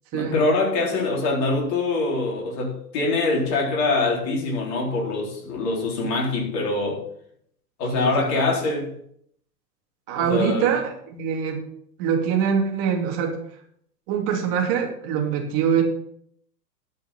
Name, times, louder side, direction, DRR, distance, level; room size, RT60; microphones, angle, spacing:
voice 1, 0.1-7.0 7.8-8.9 10.2-10.7, left 3 dB, 35° left, 4.0 m, -24 dB
voice 2, 7.9-8.4 10.1-11.6 12.0-13.4 14.1-15.8, right 7 dB, 35° right, 2.7 m, -24 dB
12.0 x 5.6 x 5.8 m
figure-of-eight pair, 115°, 49 cm